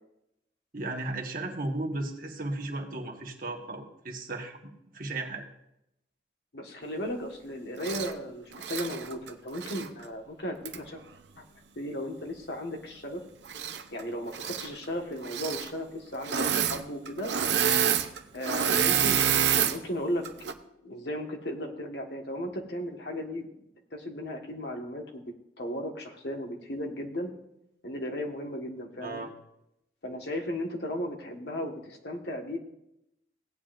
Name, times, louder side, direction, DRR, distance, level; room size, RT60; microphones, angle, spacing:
voice 1, 0.7-5.4 29.0-29.3, right 2 dB, 50° right, 1 dB, 1.5 m, -35 dB
voice 2, 6.5-11.0 11.4-11.5 11.7-13.2 13.9-17.3 18.3-20.5 20.8-25.2 25.6-27.3 27.8-29.2 30.0-32.6, equal, 65° left, 2 dB, 1.6 m, -36 dB
Engine / Mechanisms, 7.8-8.1 8.5-9.9 10.7-10.8 13.5-14.0 14.3-14.7 15.2-15.7 16.2-16.8 17.1-19.8 20.3-20.5, right 8 dB, 75° right, 0.8 m, -27 dB
16.5 x 9.5 x 2.6 m, 0.82 s
head